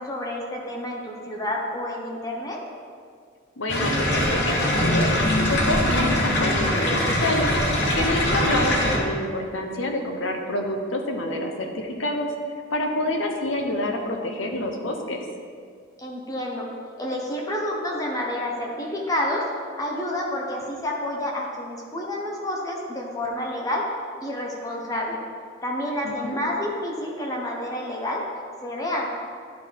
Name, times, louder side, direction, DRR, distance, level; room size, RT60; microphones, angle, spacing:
voice 1, 0.0-2.6 16.0-16.7 17.0-19.4 19.8-23.8 24.2-25.2 25.6-28.2 28.6-29.1, left 1 dB, 20° left, -2 dB, 0.9 m, -29 dB
voice 2, 3.6-7.5 7.9-12.3 12.7-15.2 26.0-26.4, left 1 dB, 85° left, 3 dB, 0.9 m, -27 dB
sound 1, 3.7-9.0, left 1 dB, 60° left, 1.1 m, -22 dB
11.0 x 3.9 x 4.6 m, 2.1 s
head